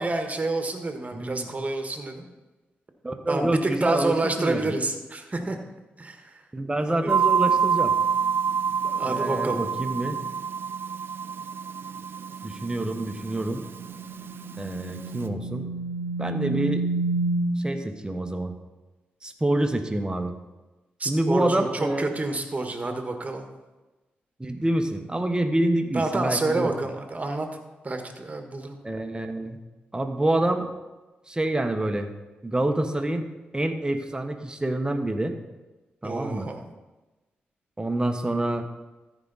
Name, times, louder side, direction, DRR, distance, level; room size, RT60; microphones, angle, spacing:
voice 1, 0.0-2.3 3.3-5.6 6.0-6.4 6.8-7.1 8.8-9.6 21.0-23.5 25.9-27.5 27.8-28.8 36.0-36.6, right 2 dB, 35° right, 5 dB, 1.6 m, -28 dB
voice 2, 1.1-1.5 3.0-4.8 6.5-7.9 9.0-10.2 12.4-13.7 14.6-15.7 16.2-16.8 17.6-18.5 19.2-20.3 21.0-22.1 24.4-26.7 28.8-29.6 29.9-30.7 31.3-32.1 32.4-33.3 33.5-35.3 36.0-36.5 37.8-38.7, right 1 dB, 20° right, 6 dB, 1.2 m, -27 dB
sound 1, 7.1-15.3, right 7 dB, 60° right, 0.5 m, -27 dB
sound 2, 13.8-17.7, right 2 dB, 90° right, 0.8 m, -29 dB
14.0 x 5.1 x 4.1 m, 1.1 s
supercardioid pair, 50°, 4 cm